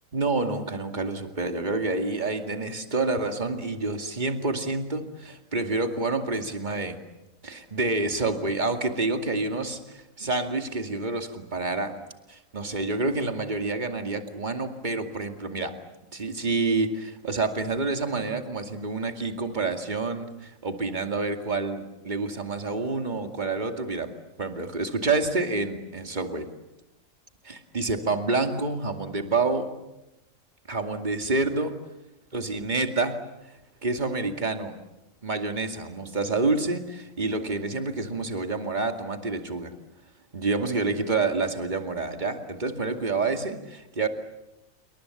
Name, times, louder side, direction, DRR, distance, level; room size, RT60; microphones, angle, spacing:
voice 1, 0.1-7.0 7.4-12.0 12.3-15.8 16.1-26.5 27.4-29.8 30.7-31.8 32.3-33.2 33.8-34.8 35.2-39.7 40.3-44.1, right 3 dB, 35° right, 6 dB, 2.5 m, -28 dB
28.0 x 24.0 x 8.4 m, 0.96 s
omnidirectional pair, 1.4 m